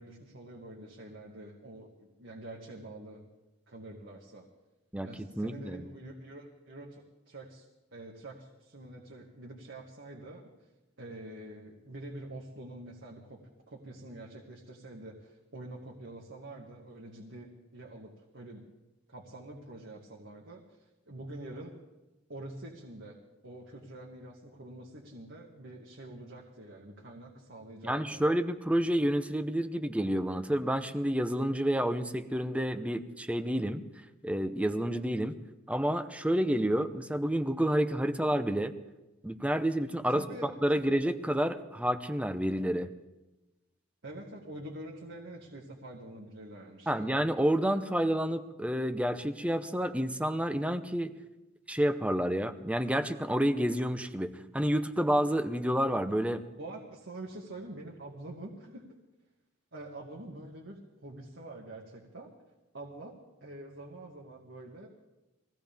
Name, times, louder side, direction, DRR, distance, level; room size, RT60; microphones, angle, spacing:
voice 1, 0.0-3.2 3.7-4.5 5.0-7.6 7.9-10.5 11.0-18.6 19.1-21.8 22.3-23.2 23.4-28.2 40.1-40.5 40.9-41.0 44.0-47.2 56.5-58.9 59.7-62.3 62.7-64.9, right 1 dB, 75° right, -2 dB, 2.0 m, -46 dB
voice 2, 5.4-5.8 27.8-33.8 34.2-35.3 35.7-38.7 39.2-40.2 40.6-42.9 46.9-51.1 51.7-56.4, equal, 5° right, 9 dB, 0.8 m, -29 dB
23.0 x 16.5 x 3.5 m, 1.0 s
head